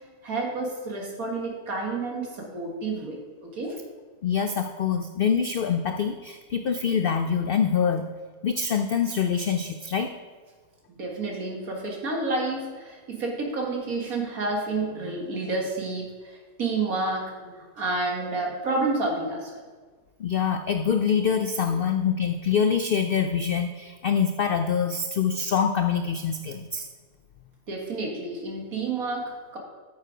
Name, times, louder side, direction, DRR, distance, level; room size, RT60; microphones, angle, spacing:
voice 1, 0.2-3.8 10.9-19.5 21.7-21.8 27.7-29.6, right 3 dB, 75° right, 0 dB, 2.1 m, -30 dB
voice 2, 4.2-8.1 8.4-10.2 20.2-26.9, left 7 dB, 80° left, 8 dB, 0.5 m, -25 dB
9.1 x 7.4 x 4.9 m, 1.4 s
omnidirectional pair, 1.5 m